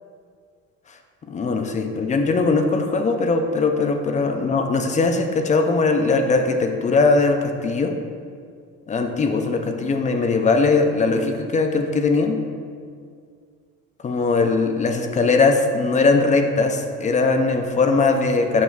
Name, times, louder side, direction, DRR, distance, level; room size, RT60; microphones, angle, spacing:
voice 1, 1.3-8.0 8.9-12.4 14.0-18.6, left 3 dB, 25° left, 5 dB, 0.5 m, -20 dB
7.1 x 3.0 x 5.9 m, 2.2 s
cardioid pair, 125°, 29 cm